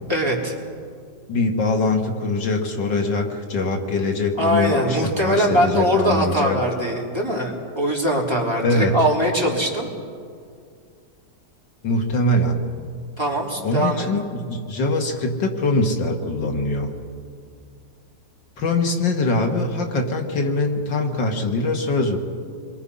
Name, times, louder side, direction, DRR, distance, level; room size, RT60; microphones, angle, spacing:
voice 1, 0.1-0.5 4.4-9.9 13.2-14.1, equal, 15° right, -3 dB, 3.3 m, -21 dB
voice 2, 1.3-6.6 8.6-8.9 11.8-12.6 13.6-16.9 18.6-22.2, left 2 dB, 90° left, 3 dB, 2.6 m, -22 dB
28.0 x 23.0 x 5.6 m, 2.2 s
omnidirectional pair, 1.9 m